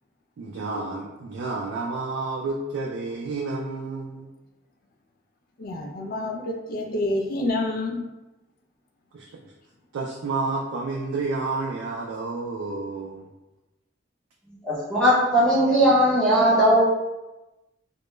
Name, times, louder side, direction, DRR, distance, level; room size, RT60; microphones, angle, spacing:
voice 1, 0.4-4.3 9.1-9.5 9.9-13.3, right 3 dB, 80° right, -1 dB, 0.3 m, -30 dB
voice 2, 5.6-8.1, left 2 dB, 50° left, 2 dB, 0.3 m, -28 dB
voice 3, 14.6-16.8, equal, 5° left, -8 dB, 0.6 m, -18 dB
2.1 x 2.0 x 3.0 m, 1.0 s
head